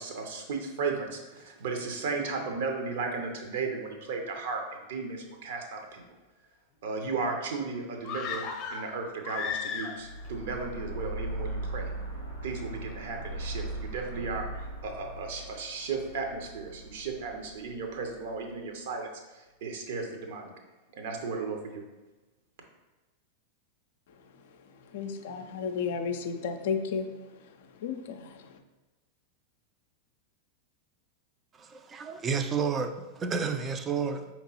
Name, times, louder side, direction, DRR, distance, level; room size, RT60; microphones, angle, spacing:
voice 1, 0.0-6.0 6.8-11.9 12.4-19.1 19.3-20.5 20.9-21.8, right 4 dB, 55° right, 3 dB, 0.7 m, -35 dB
sound 1, 8.0-10.3 10.6-10.7, left 6 dB, 35° left, 0.7 m, -35 dB
sound 2, 10.0-18.3, right 1 dB, 90° right, 1.4 m, -39 dB
voice 2, 24.1-28.6, left 6 dB, 55° left, 7 dB, 0.4 m, -34 dB
voice 3, 31.5-34.3, right 6 dB, 20° right, 7 dB, 0.4 m, -31 dB
5.1 x 2.9 x 2.9 m, 1.1 s
figure-of-eight pair, 90°, 0 cm